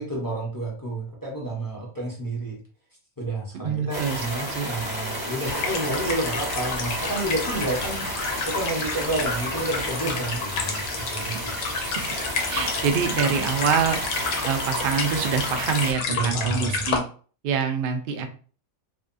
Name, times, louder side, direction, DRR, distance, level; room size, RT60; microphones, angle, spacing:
voice 1, 0.0-2.6 3.2-8.0 8.5-10.8 11.1-11.5 16.1-16.9, right 2 dB, 20° left, -4 dB, 0.5 m, -30 dB
voice 2, 3.6-4.3 4.5-4.7 11.9-12.2 12.5-17.0 17.4-18.3, right 6 dB, 80° right, 6 dB, 0.5 m, -26 dB
sound 1, 3.9-15.9, equal, 25° right, 0.5 m, -31 dB
sound 2, 5.4-17.0, left 4 dB, 80° left, 1.1 m, -31 dB
2.7 x 2.2 x 2.5 m, 0.40 s
omnidirectional pair, 1.5 m